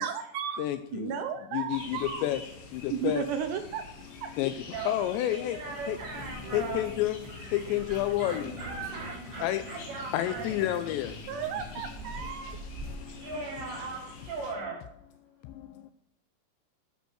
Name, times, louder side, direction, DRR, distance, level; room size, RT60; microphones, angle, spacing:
voice 1, 0.0-0.6 0.9-2.2 2.9-3.9 4.2-4.3 11.3-12.6, right 8 dB, 80° right, 7 dB, 2.5 m, -34 dB
voice 2, 0.6-1.2 1.5-2.4 2.7-3.2 4.4-4.6 4.9-5.6 5.9-6.0 6.5-8.5 9.4-9.6 10.1-11.3 12.2-12.5 12.8-13.3 15.4-15.9, left 13 dB, 85° left, 10 dB, 2.5 m, -30 dB
sound 1, 1.7-14.5, left 3 dB, 60° left, 4.2 m, -47 dB
voice 3, 4.7-6.8 7.2-10.7 13.1-14.8, right 3 dB, 60° right, -3 dB, 5.3 m, -39 dB
sound 2, 5.0-13.1, right 1 dB, 25° right, 2.4 m, -45 dB
12.5 x 8.2 x 6.3 m, 0.77 s
omnidirectional pair, 5.8 m